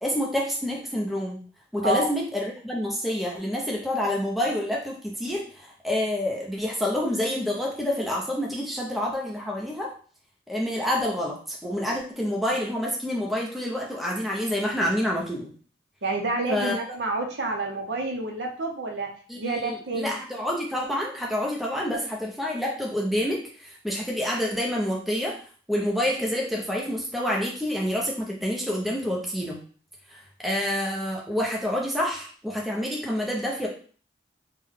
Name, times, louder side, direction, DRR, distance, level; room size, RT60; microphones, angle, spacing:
voice 1, 0.0-1.4 1.7-9.9 10.5-15.5 16.5-16.7 19.3-25.3 25.7-29.6 30.1-33.7, left 1 dB, ahead, -3 dB, 0.6 m, -28 dB
voice 2, 16.0-19.1 19.4-20.2, right 2 dB, 75° right, 2 dB, 0.7 m, -28 dB
3.5 x 2.2 x 3.5 m, 0.43 s
head